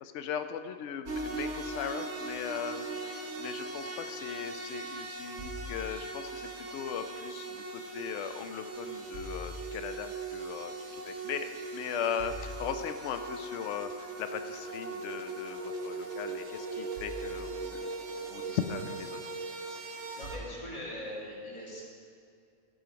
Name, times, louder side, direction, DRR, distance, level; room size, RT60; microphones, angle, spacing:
voice 1, 0.0-17.9 18.3-19.2, left 8 dB, 70° left, 8 dB, 0.9 m, -38 dB
sound 1, 1.1-20.4, right 3 dB, 60° right, 1.3 m, -39 dB
voice 2, 20.1-21.8, left 1 dB, 20° left, -8 dB, 2.7 m, -41 dB
15.0 x 5.2 x 5.0 m, 2.3 s
omnidirectional pair, 1.4 m